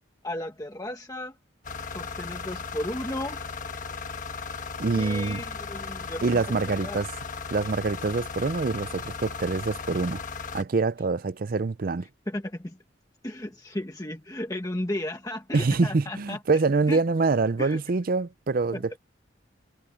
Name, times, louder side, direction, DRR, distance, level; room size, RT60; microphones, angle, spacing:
voice 1, 0.2-1.4 1.9-3.4 4.9-7.0 12.3-12.8 13.2-16.4 16.9-17.2 17.6-17.8 18.7-18.8, left 1 dB, 20° left, 1.3 m, -34 dB
sound 1, 1.6-10.6, left 5 dB, 40° left, 1.3 m, -36 dB
voice 2, 4.8-5.4 6.2-7.1 7.5-10.2 10.5-12.1 15.5-19.0, right 3 dB, 50° right, 0.5 m, -25 dB
head